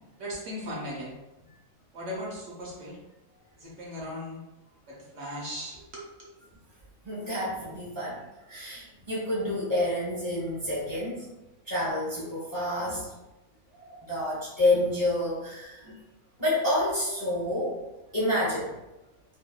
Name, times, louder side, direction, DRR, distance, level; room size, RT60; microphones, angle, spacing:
voice 1, 0.2-1.1 1.9-3.0 3.6-4.4 4.9-6.1, equal, 65° right, -4 dB, 1.0 m, -37 dB
voice 2, 7.0-8.2 8.5-11.3 11.7-13.1 13.7-15.9 16.4-17.8 18.1-18.7, left 1 dB, 20° left, -9 dB, 0.7 m, -29 dB
2.8 x 2.1 x 2.2 m, 0.98 s
omnidirectional pair, 1.5 m